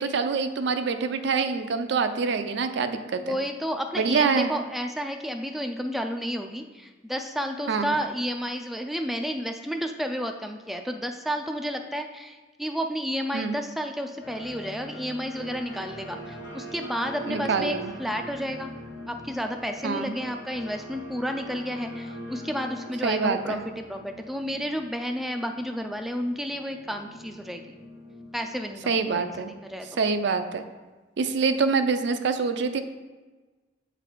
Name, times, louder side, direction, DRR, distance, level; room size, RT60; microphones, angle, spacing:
voice 1, 0.0-3.4 4.0-4.5 7.7-7.9 13.3-13.5 17.3-17.9 19.8-20.1 23.0-23.6 28.9-29.5 30.0-30.6 31.2-32.8, right 5 dB, 65° right, 8 dB, 0.5 m, -25 dB
voice 2, 3.2-18.7 19.1-27.8 28.3-29.2 29.6-30.0, equal, ahead, 4 dB, 0.3 m, -31 dB
sound 1, 14.2-30.5, equal, 70° left, 1.1 m, -42 dB
7.4 x 4.0 x 4.5 m, 1.3 s
head